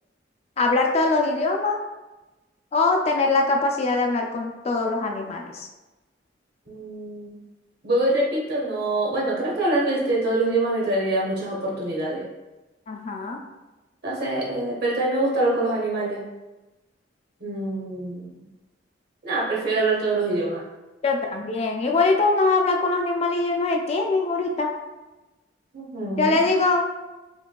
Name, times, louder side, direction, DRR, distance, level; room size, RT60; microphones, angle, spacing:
voice 1, 0.6-1.8 2.7-5.7 12.9-13.4 21.0-24.7 26.2-26.9, left 3 dB, 35° left, 2 dB, 0.3 m, -22 dB
voice 2, 6.7-7.3 7.8-12.2 14.0-16.2 17.4-18.4 19.2-20.6 25.7-26.5, right 2 dB, 60° right, -4 dB, 1.1 m, -25 dB
4.5 x 2.7 x 2.2 m, 1.1 s
head